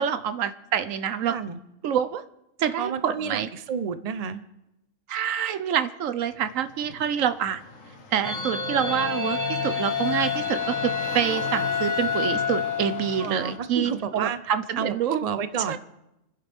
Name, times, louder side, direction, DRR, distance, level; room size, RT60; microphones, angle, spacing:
voice 1, 0.0-1.4 1.8-2.2 2.6-3.5 5.1-7.6 8.1-15.2 15.7-15.8, right 9 dB, 85° right, 12 dB, 1.1 m, -27 dB
voice 2, 1.3-1.6 2.8-4.4 13.2-14.4 14.8-14.9 15.2-15.8, right 7 dB, 35° right, 11 dB, 0.7 m, -30 dB
sound 1, 6.3-13.6, left 3 dB, 85° left, 1.9 m, -41 dB
sound 2, 8.2-13.6, left 5 dB, 15° left, 1.7 m, -28 dB
29.0 x 10.5 x 3.6 m, 0.89 s
omnidirectional pair, 1.3 m